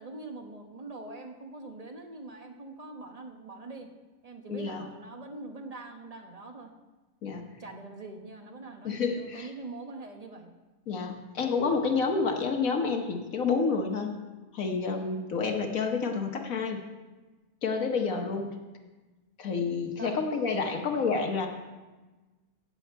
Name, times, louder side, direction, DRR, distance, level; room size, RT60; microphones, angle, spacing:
voice 1, 0.0-3.9 4.2-6.7 7.6-10.5 12.1-12.4 14.9-15.3 17.8-18.3 20.0-20.2 20.5-20.9, right 2 dB, 30° right, 3 dB, 1.0 m, -44 dB
voice 2, 4.5-4.9 7.2-7.6 8.8-9.5 10.9-14.2 14.5-16.8 17.6-18.5 19.4-21.5, left 4 dB, 60° left, 4 dB, 1.4 m, -29 dB
16.5 x 7.1 x 4.5 m, 1.2 s
omnidirectional pair, 1.7 m